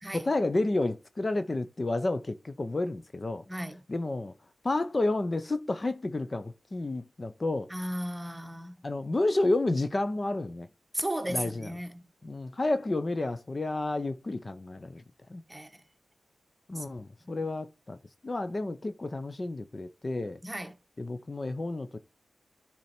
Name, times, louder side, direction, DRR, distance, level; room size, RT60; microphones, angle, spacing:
voice 1, 0.1-3.4 3.9-4.3 4.6-7.7 8.8-10.7 11.3-11.7 12.2-15.0 15.3-15.4 16.7-18.0 18.2-20.4 21.0-22.0, left 2 dB, 40° left, 0.7 m, -30 dB
voice 2, 3.5-3.8 7.7-8.8 10.9-12.0 15.5-15.7 16.7-16.9 20.4-20.7, right 1 dB, 15° right, 1.4 m, -35 dB
10.5 x 4.5 x 4.4 m
cardioid pair, 60°, 0 cm